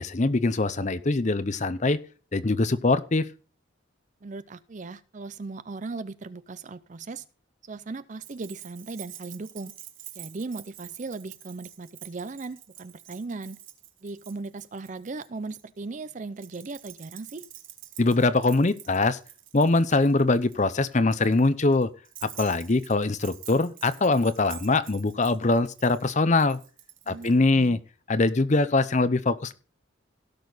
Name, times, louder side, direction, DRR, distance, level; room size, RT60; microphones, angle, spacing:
voice 1, 0.0-2.0 2.3-3.3 18.0-19.2 19.5-21.9 22.2-26.6 27.1-27.8 28.1-29.5, left 3 dB, 35° left, 14 dB, 0.6 m, -23 dB
voice 2, 4.2-7.2 7.6-9.7 10.2-13.6 14.0-17.5 27.1-27.8, right 3 dB, 35° right, 15 dB, 0.5 m, -38 dB
Keys jangling, 8.2-15.6 16.4-27.4, right 12 dB, 70° right, 1.4 m, -47 dB
17.0 x 6.4 x 3.9 m, 0.37 s
head